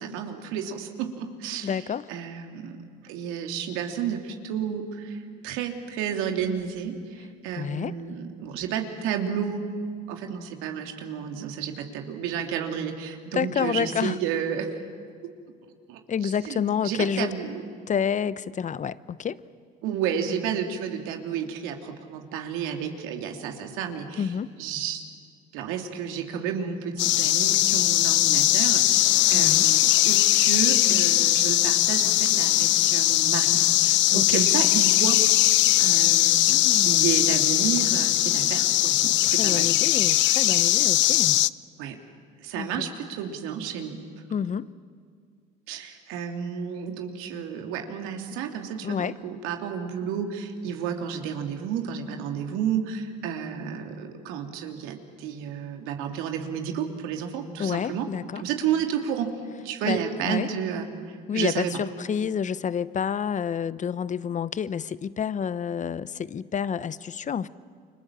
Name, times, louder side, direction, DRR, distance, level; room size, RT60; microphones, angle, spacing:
voice 1, 0.0-1.8 2.1-2.8 3.0-9.7 10.1-14.8 15.9-17.6 19.8-24.3 24.6-25.0 25.5-35.2 35.8-39.7 41.8-42.0 42.4-44.0 45.7-58.1 58.4-59.3 59.6-61.7, right 8 dB, 75° right, 4 dB, 2.9 m, -31 dB
voice 2, 1.6-2.0 7.6-7.9 13.3-14.2 16.1-17.3 17.9-19.4 24.2-24.5 29.3-29.7 34.1-34.4 36.5-37.1 39.2-41.4 42.6-42.9 44.3-44.7 48.8-49.2 57.6-58.4 59.8-60.5 61.3-67.5, left 7 dB, 35° left, 18 dB, 0.9 m, -29 dB
sound 1, 27.0-41.5, left 16 dB, 60° left, 0.6 m, -20 dB
29.5 x 25.0 x 7.5 m, 2.1 s
supercardioid pair, 80°, 21 cm